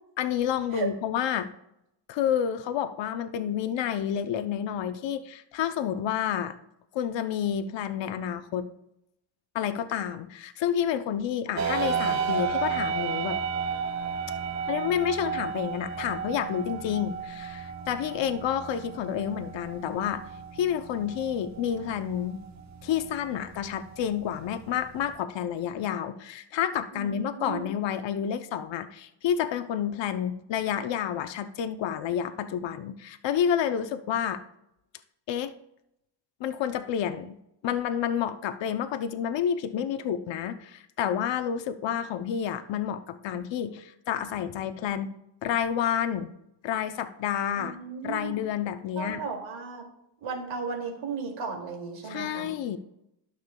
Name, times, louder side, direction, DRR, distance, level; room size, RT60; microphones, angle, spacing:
voice 1, 0.2-1.5 2.1-6.6 6.9-8.7 9.5-13.4 14.7-20.2 20.5-22.4 22.8-34.4 35.3-35.5 36.4-37.4 37.6-45.1 45.4-46.3 46.6-47.8 48.0-49.2 52.0-52.8, left 9 dB, 70° left, 9 dB, 0.7 m, -29 dB
sound 1, 11.6-25.2, right 6 dB, 40° right, 0.8 m, -33 dB
voice 2, 26.9-27.7 47.6-48.4 49.0-49.9 50.2-52.5, right 5 dB, 90° right, 0 dB, 2.4 m, -35 dB
12.5 x 6.6 x 2.2 m, 0.80 s
cardioid pair, 115°, 45 cm